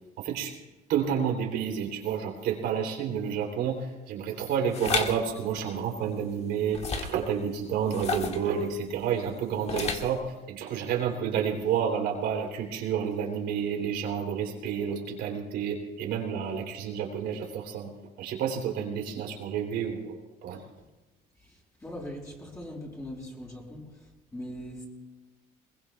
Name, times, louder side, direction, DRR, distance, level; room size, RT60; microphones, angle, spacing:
voice 1, 0.2-0.5 0.9-17.9 18.2-20.6, right 7 dB, 85° right, 1 dB, 3.3 m, -30 dB
sound 1, 4.7-5.1 6.7-7.2 7.9-8.5 9.7-10.2, left 4 dB, 40° left, 1.6 m, -30 dB
voice 2, 21.4-24.8, equal, 15° left, -4 dB, 6.4 m, -41 dB
22.0 x 21.0 x 2.4 m, 1.1 s
cardioid pair, 110°, 17 cm